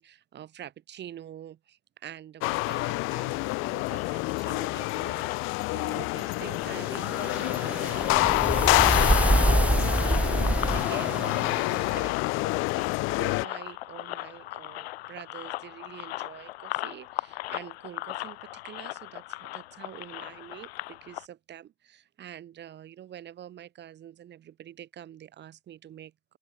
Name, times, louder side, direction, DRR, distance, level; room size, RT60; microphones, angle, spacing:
voice 1, 0.0-26.4, right 11 dB, 30° right, 6.5 m, -46 dB
sound 1, 2.4-13.4, left 25 dB, 35° left, 0.7 m, -27 dB
sound 2, 3.3-21.2, left 18 dB, 60° left, 2.4 m, -40 dB
sound 3, 6.6-11.9, right 2 dB, 5° right, 0.9 m, -26 dB
open air
hypercardioid pair, 105°, 35 cm